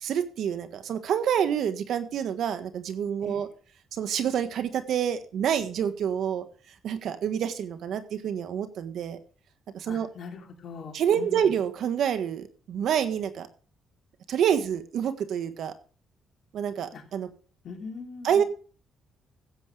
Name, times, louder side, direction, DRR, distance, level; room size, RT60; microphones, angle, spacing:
voice 1, 0.0-3.5 3.9-6.4 6.8-9.2 9.7-10.1 10.9-13.5 14.3-15.7 16.5-17.3 18.2-18.4, right 8 dB, 70° right, 10 dB, 1.5 m, -27 dB
voice 2, 9.9-11.5 16.9-17.0 17.6-18.4, left 5 dB, 60° left, 3 dB, 3.0 m, -41 dB
15.5 x 8.0 x 5.0 m, 0.40 s
cardioid pair, 90°, 0 cm